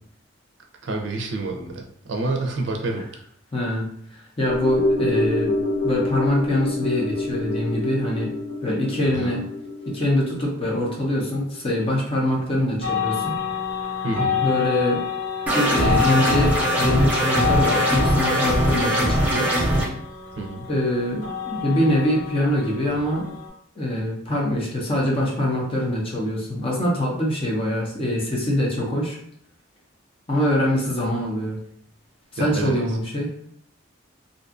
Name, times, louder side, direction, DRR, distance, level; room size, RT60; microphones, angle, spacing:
voice 1, 0.8-3.0 9.1-9.4 14.0-14.4 20.4-20.6 32.4-32.7, right 2 dB, 70° right, 2 dB, 0.4 m, -28 dB
voice 2, 3.5-3.9 4.4-5.5 5.8-8.3 8.6-9.4 9.9-13.4 14.4-15.0 15.5-19.5 20.7-23.3 23.8-29.2 30.3-31.6 32.4-33.3, left 1 dB, 30° left, -3 dB, 0.6 m, -24 dB
sound 1, 4.5-12.9 13.2-13.3, left 2 dB, 75° left, 0.7 m, -27 dB
sound 2, 12.8-23.5, left 7 dB, 60° left, 1.5 m, -28 dB
sound 3, 15.5-19.8, right 1 dB, 10° right, 0.6 m, -21 dB
2.5 x 2.3 x 2.4 m, 0.66 s
head